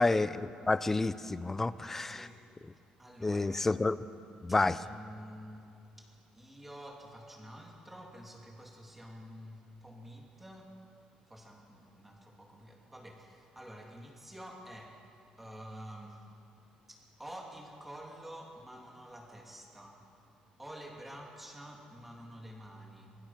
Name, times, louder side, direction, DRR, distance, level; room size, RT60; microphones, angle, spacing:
voice 1, 0.0-2.3 3.2-4.1 4.4-4.8, left 3 dB, 15° left, 14 dB, 0.6 m, -29 dB
voice 2, 2.0-2.5 3.0-3.6 4.5-10.8 11.3-15.1 15.4-16.3 16.9-20.1 20.6-23.1, equal, 5° right, 0 dB, 2.9 m, -49 dB
25.0 x 23.0 x 6.0 m, 2.5 s
cardioid pair, 170°, 3 cm